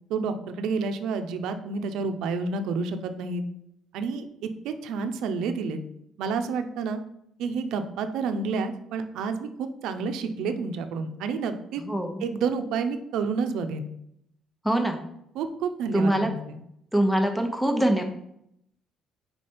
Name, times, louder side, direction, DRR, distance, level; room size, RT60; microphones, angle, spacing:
voice 1, 0.1-3.4 3.9-5.8 6.2-7.0 7.4-11.8 12.2-13.9 15.3-16.6, right 5 dB, 80° right, 8 dB, 0.6 m, -29 dB
voice 2, 11.8-12.2 14.6-15.0 15.9-16.3 16.9-18.0, right 1 dB, ahead, 5 dB, 0.7 m, -23 dB
5.0 x 4.5 x 4.3 m, 0.76 s
cardioid pair, 155°, 0 cm